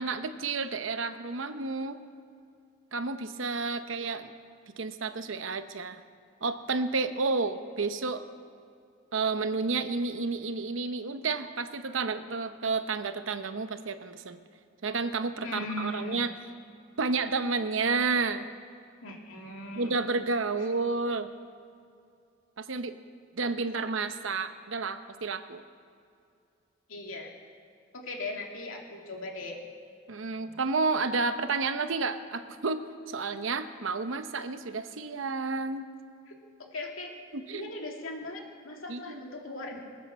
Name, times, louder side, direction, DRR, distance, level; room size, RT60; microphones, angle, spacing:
voice 1, 0.0-2.0 2.9-4.3 4.8-6.0 6.4-8.3 9.1-14.4 14.8-16.3 17.0-18.5 19.7-21.3 22.6-22.9 23.4-25.6 30.1-32.8 33.1-35.9 37.3-37.7 38.9-39.2, right 4 dB, 70° right, 10 dB, 0.9 m, -31 dB
voice 2, 15.4-16.2 19.0-20.0 26.9-27.3 27.9-29.6 36.3-36.4 36.7-37.1 37.5-39.8, left 2 dB, 90° left, 0 dB, 2.7 m, -38 dB
22.0 x 9.2 x 7.0 m, 2.5 s
head